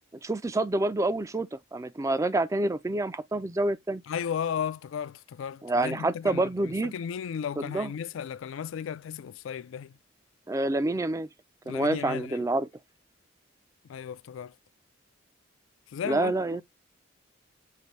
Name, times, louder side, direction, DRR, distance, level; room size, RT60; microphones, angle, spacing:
voice 1, 0.2-4.0 5.6-6.9 7.6-7.9 10.5-11.3 11.7-12.7 16.0-16.6, right 2 dB, 15° right, 0.3 m, -27 dB
voice 2, 4.1-9.9 11.7-12.4 13.9-14.5 15.9-16.3, left 8 dB, 75° left, 0.3 m, -35 dB
6.7 x 2.6 x 3.0 m
head